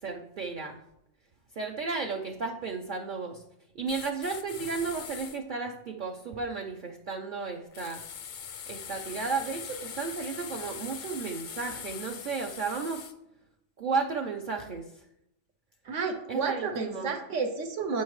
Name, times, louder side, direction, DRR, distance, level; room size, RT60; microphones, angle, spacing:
voice 1, 0.0-0.8 1.6-3.4 3.7-8.0 8.7-13.1 13.8-14.9 16.3-17.2, right 4 dB, 50° right, 1 dB, 0.7 m, -33 dB
sound 1, 3.9-5.4 7.7-13.1, left 7 dB, 55° left, 0.5 m, -42 dB
voice 2, 15.8-18.0, right 4 dB, 80° right, 3 dB, 1.1 m, -31 dB
8.5 x 7.1 x 3.1 m, 0.82 s
omnidirectional pair, 1.3 m